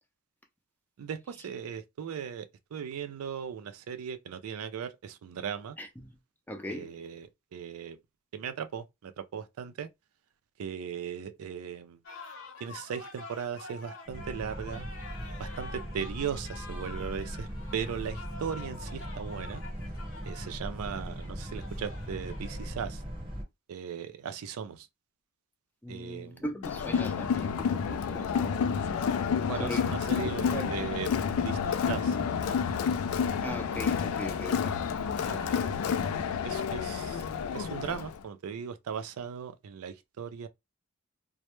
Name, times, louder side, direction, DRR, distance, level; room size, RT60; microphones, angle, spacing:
voice 1, 1.0-5.8 6.7-8.0 8.3-9.9 10.6-12.0 12.6-14.9 15.4-19.6 20.2-23.0 23.7-24.9 25.9-26.4 29.5-31.1 31.4-32.2 32.5-32.6 35.2-35.9 36.4-37.2 37.5-40.5, right 7 dB, 85° right, 0.4 m, -38 dB
voice 2, 5.8-6.2 6.5-7.0 25.8-28.7 29.6-30.9 33.4-34.8, equal, 10° left, 0.4 m, -39 dB
sound 1, 12.0-22.7, left 3 dB, 65° left, 0.8 m, -47 dB
Boat Water vehicle, 14.1-23.4, equal, 25° right, 0.8 m, -39 dB
Crowd, 26.6-38.2, left 6 dB, 85° left, 0.3 m, -30 dB
2.1 x 2.0 x 2.9 m
head